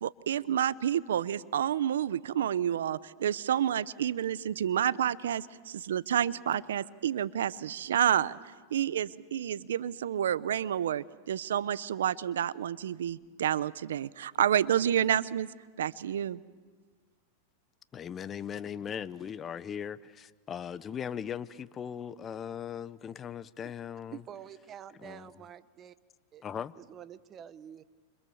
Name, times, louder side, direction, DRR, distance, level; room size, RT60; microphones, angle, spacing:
voice 1, 0.0-8.4 8.7-15.5 15.8-16.4, right 10 dB, 85° right, 0.8 m, -29 dB
voice 2, 17.9-24.2 25.0-25.3 26.4-26.7, left 8 dB, 25° left, 0.9 m, -39 dB
voice 3, 24.1-25.9 26.3-26.4 26.7-27.8, right 9 dB, 30° right, 1.2 m, -47 dB
29.5 x 26.5 x 7.2 m
hypercardioid pair, 115°, 0 cm